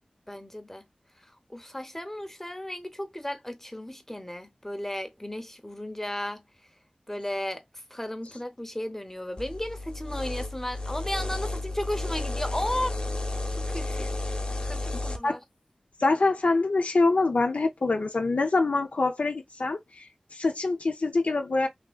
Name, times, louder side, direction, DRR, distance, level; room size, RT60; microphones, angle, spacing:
voice 1, 0.3-0.8 1.5-6.4 7.1-7.6 7.9-13.0 13.7-14.1 14.6-15.4, left 1 dB, 15° left, 0.8 m, -34 dB
sound 1, 9.4-15.2, left 2 dB, 45° left, 0.9 m, -32 dB
voice 2, 16.0-20.0 20.3-21.7, left 3 dB, 85° left, 0.6 m, -25 dB
3.4 x 2.8 x 2.3 m
wide cardioid pair, 50°, 2 cm